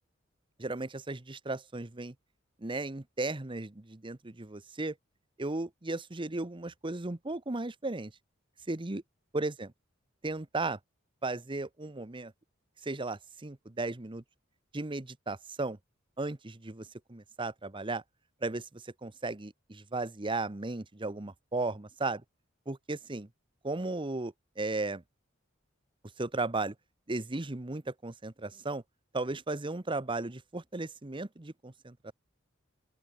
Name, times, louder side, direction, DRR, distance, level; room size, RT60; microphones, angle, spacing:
voice 1, 0.6-2.1 2.6-4.9 5.4-8.1 8.7-9.0 9.3-9.7 10.2-10.8 11.2-12.3 12.8-14.2 14.7-15.8 16.2-18.0 18.4-22.2 22.7-23.3 23.6-25.0 26.2-26.7 27.1-28.8 29.1-32.0, right 2 dB, 25° right, 1.0 m, -35 dB
open air
head